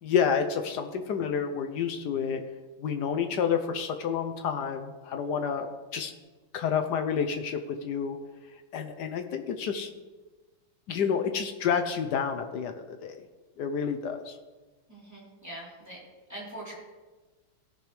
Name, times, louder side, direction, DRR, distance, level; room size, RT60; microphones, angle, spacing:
voice 1, 0.0-2.4 2.8-5.7 5.9-6.1 6.5-8.2 8.7-9.9 10.9-13.2 13.6-14.4, left 7 dB, 70° left, 6 dB, 1.0 m, -29 dB
voice 2, 14.9-16.0 16.3-16.7, right 1 dB, 5° right, -8 dB, 3.5 m, -43 dB
17.5 x 6.2 x 3.3 m, 1.3 s
omnidirectional pair, 2.4 m